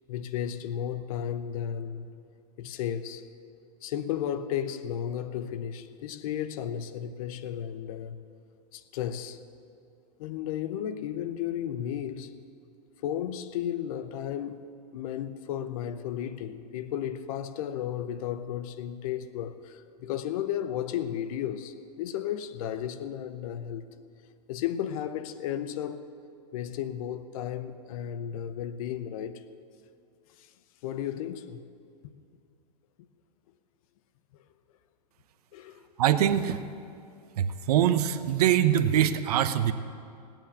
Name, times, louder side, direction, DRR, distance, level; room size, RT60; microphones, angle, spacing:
voice 1, 0.1-2.1 2.6-3.2 3.8-8.2 8.7-9.4 10.2-12.4 13.0-23.8 24.5-26.0 26.5-29.4 30.4-30.5 30.8-31.6 35.5-35.8, left 10 dB, 55° left, 0.9 m, -34 dB
voice 2, 36.0-36.6 37.4-39.7, right 10 dB, 65° right, 0.8 m, -23 dB
18.0 x 9.0 x 7.0 m
hypercardioid pair, 105°, 21 cm